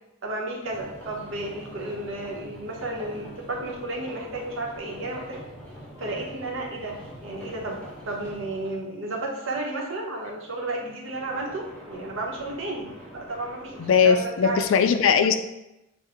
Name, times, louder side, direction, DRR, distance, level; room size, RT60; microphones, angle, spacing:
voice 1, 0.2-5.4 6.0-7.8 8.1-14.8, right 2 dB, 75° right, -1 dB, 0.9 m, -33 dB
sound 1, 0.6-8.8 11.0-14.1, equal, 5° left, 1.1 m, -44 dB
voice 2, 13.8-15.3, left 6 dB, 70° left, 9 dB, 0.4 m, -19 dB
6.1 x 2.2 x 3.5 m, 0.91 s
head